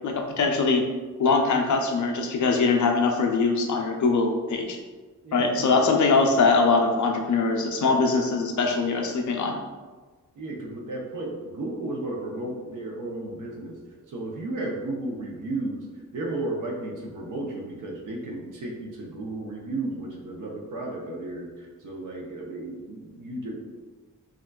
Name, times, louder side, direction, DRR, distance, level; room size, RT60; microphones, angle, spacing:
voice 1, 0.0-0.8 1.2-4.8 5.3-9.6, left 4 dB, 65° left, 2 dB, 0.5 m, -22 dB
voice 2, 5.2-5.8 10.4-13.8 14.1-15.9 16.1-23.6, right 2 dB, 70° right, -1 dB, 0.7 m, -34 dB
3.6 x 2.4 x 2.2 m, 1.3 s
wide cardioid pair, 125°, 32 cm